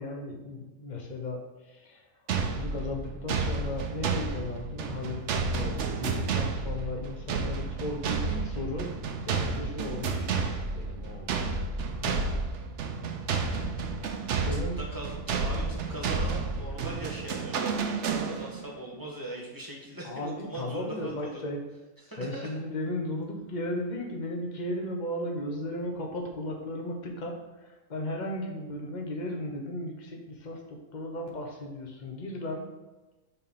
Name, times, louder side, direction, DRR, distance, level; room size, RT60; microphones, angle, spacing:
voice 1, 0.0-2.0 2.4-8.9 9.2-12.5 14.4-14.8 20.0-21.6 22.2-32.7, left 1 dB, 35° left, 1 dB, 1.0 m, -36 dB
sound 1, 2.3-18.7, right 4 dB, 60° right, 0.9 m, -31 dB
voice 2, 14.8-17.9 18.2-21.4 22.0-22.5, right 1 dB, 15° right, -3 dB, 1.3 m, -40 dB
6.9 x 3.8 x 5.6 m, 1.1 s
omnidirectional pair, 1.6 m